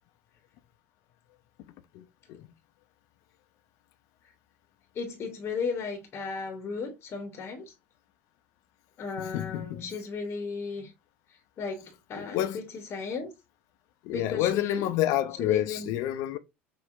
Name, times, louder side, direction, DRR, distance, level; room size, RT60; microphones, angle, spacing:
voice 1, 1.9-2.5 9.2-9.8 12.2-12.6 14.0-16.4, left 13 dB, 55° left, 0.5 m, -29 dB
voice 2, 4.9-7.7 9.0-10.9 11.3-13.3 14.1-14.9 15.4-15.9, left 5 dB, 35° left, 0.8 m, -35 dB
5.5 x 2.0 x 2.5 m
figure-of-eight pair, 70°, 7 cm